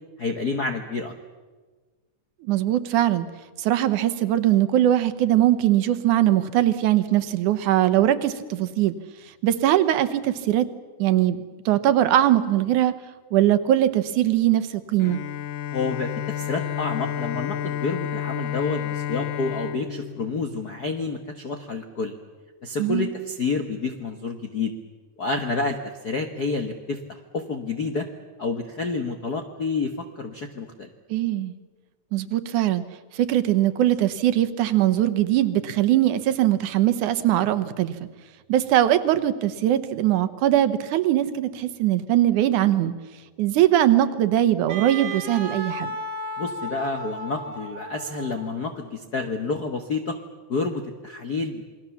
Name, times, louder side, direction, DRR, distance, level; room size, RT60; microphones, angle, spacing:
voice 1, 0.2-1.1 15.7-22.1 22.6-24.7 25.2-25.8 26.0-28.1 28.4-30.9 46.4-50.2 50.5-51.6, left 4 dB, 60° left, 5 dB, 1.0 m, -29 dB
voice 2, 2.5-3.3 3.6-8.9 9.4-10.7 11.0-12.9 13.3-15.2 22.8-23.1 31.1-31.5 32.1-32.8 33.1-38.0 38.5-42.9 43.4-45.9, right 12 dB, 75° right, 12 dB, 2.4 m, -21 dB
Bowed string instrument, 15.0-21.0, left 9 dB, 85° left, 2.6 m, -31 dB
Wind instrument woodwind instrument, 44.7-48.7, right 1 dB, 45° right, 2.1 m, -34 dB
28.0 x 21.0 x 7.1 m, 1.4 s
omnidirectional pair, 3.7 m